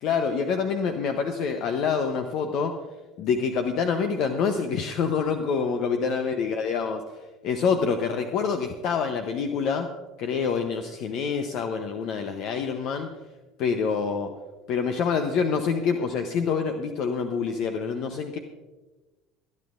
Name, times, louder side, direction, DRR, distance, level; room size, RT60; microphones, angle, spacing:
voice 1, 0.0-2.8 3.2-13.1 13.6-14.3 14.7-18.4, left 6 dB, 60° left, 6 dB, 0.8 m, -26 dB
26.0 x 9.7 x 2.6 m, 1.2 s
hypercardioid pair, 70°, 0 cm